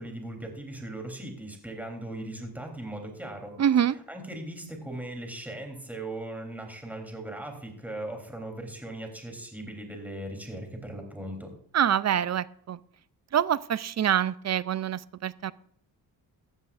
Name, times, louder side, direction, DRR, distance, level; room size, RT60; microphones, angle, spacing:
voice 1, 0.0-3.6 4.1-11.5, right 1 dB, 5° right, 2 dB, 3.4 m, -38 dB
voice 2, 3.6-4.0 11.7-12.8 13.3-15.5, right 9 dB, 40° right, 18 dB, 0.6 m, -25 dB
16.0 x 11.0 x 2.5 m, 0.64 s
cardioid pair, 85°, 41 cm